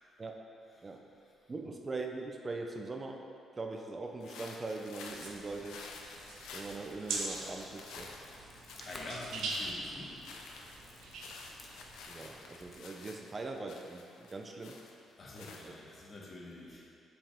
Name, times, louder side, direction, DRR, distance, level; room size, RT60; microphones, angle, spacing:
voice 1, 1.5-3.3 3.6-5.8 6.5-8.2 12.0-14.8 15.4-15.7, right 3 dB, 30° right, 2 dB, 0.5 m, -41 dB
sound 1, 4.2-16.1, left 4 dB, 85° left, 0.5 m, -51 dB
Drops in the small cave, 5.1-12.1, right 3 dB, 80° right, 0.7 m, -43 dB
sound 2, 7.8-12.8, left 1 dB, 15° left, 0.9 m, -56 dB
voice 2, 8.8-10.2 15.2-16.9, left 2 dB, 40° left, -2 dB, 1.1 m, -46 dB
7.2 x 4.7 x 3.5 m, 2.6 s
cardioid pair, 90°, 0 cm